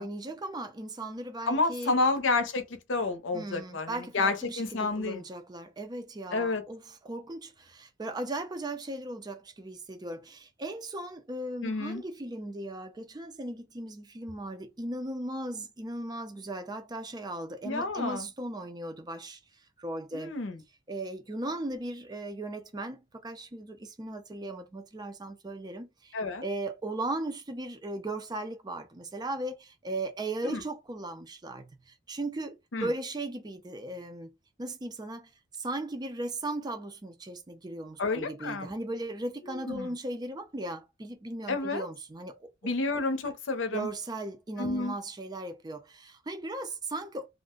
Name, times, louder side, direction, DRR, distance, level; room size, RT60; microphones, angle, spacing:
voice 1, 0.0-2.0 3.3-19.4 19.8-20.3 20.9-26.1 26.4-34.3 34.6-35.3 35.6-42.5 43.7-47.3, right 2 dB, 20° right, 0.4 m, -37 dB
voice 2, 1.5-5.2 6.3-6.6 11.6-12.0 17.6-18.3 20.1-20.6 26.1-26.4 30.4-30.6 32.7-32.9 38.0-38.7 39.6-39.9 41.5-41.8 42.6-43.9 44.6-45.0, left 3 dB, 75° left, 0.7 m, -30 dB
2.4 x 2.1 x 3.6 m
head